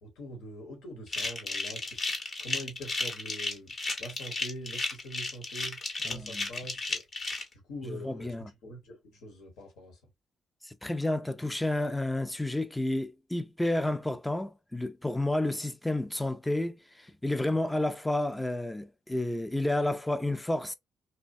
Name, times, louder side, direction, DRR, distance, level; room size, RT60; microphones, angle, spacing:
voice 1, 0.0-2.0 2.4-7.3 7.7-10.0, equal, 85° left, 1.2 m, -44 dB
sound 1, 1.1-7.4, left 3 dB, 45° left, 0.9 m, -33 dB
voice 2, 6.0-6.5 7.9-8.5 10.6-20.7, left 1 dB, 10° left, 0.4 m, -31 dB
2.9 x 2.2 x 2.6 m
cardioid pair, 90°, 0 cm